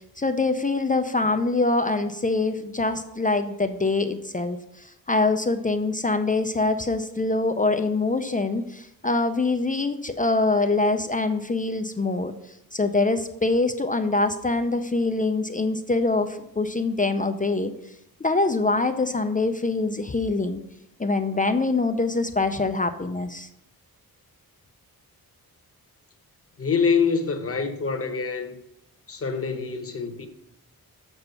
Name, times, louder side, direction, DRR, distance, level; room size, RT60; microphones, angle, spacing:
voice 1, 0.2-12.3 12.7-17.7 18.2-20.6 21.0-23.5, left 3 dB, 20° left, 0.4 m, -24 dB
voice 2, 26.6-28.6 29.1-30.3, left 5 dB, 40° left, 1.0 m, -25 dB
6.9 x 6.9 x 5.6 m
wide cardioid pair, 165°, 37 cm